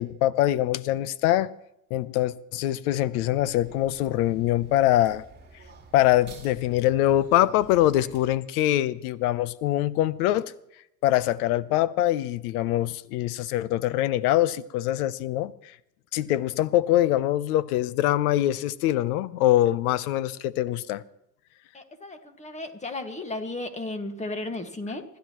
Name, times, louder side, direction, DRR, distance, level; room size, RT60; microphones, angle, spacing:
voice 1, 0.0-1.5 1.9-5.2 5.9-10.5 11.0-15.5 16.1-21.0, left 14 dB, 65° left, 0.9 m, -23 dB
sound 1, 3.1-8.3, right 4 dB, 20° right, 4.4 m, -50 dB
voice 2, 21.7-25.0, left 2 dB, 15° left, 1.8 m, -34 dB
26.5 x 12.0 x 3.1 m
hypercardioid pair, 105°, 48 cm